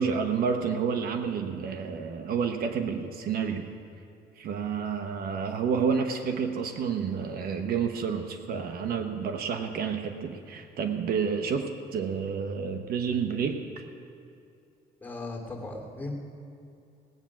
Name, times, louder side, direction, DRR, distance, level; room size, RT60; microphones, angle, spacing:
voice 1, 0.0-3.7 4.4-13.9, right 6 dB, 65° right, 6 dB, 1.0 m, -29 dB
voice 2, 15.0-16.1, left 2 dB, 10° left, -1 dB, 2.6 m, -37 dB
18.0 x 8.8 x 6.0 m, 2.6 s
cardioid pair, 110°, 17 cm